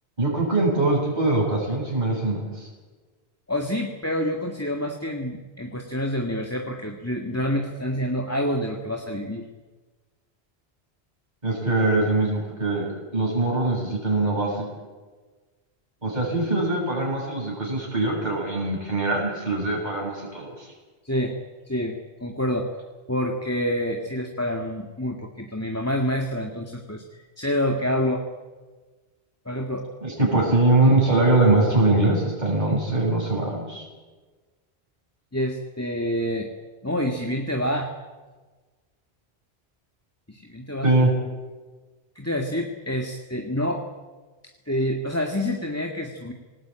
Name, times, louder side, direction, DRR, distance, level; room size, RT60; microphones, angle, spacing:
voice 1, 0.2-2.7 11.4-12.9 13.1-14.6 16.0-20.7 30.0-33.8 40.8-41.1, right 2 dB, 45° right, -2 dB, 7.4 m, -22 dB
voice 2, 3.5-9.5 21.0-21.3 21.7-22.0 22.2-22.7 23.1-28.2 29.5-29.9 35.3-36.5 36.8-37.9 40.3-41.1 42.2-43.8 44.7-46.3, equal, 15° left, 2 dB, 2.0 m, -27 dB
27.0 x 19.5 x 8.9 m, 1.3 s
omnidirectional pair, 1.1 m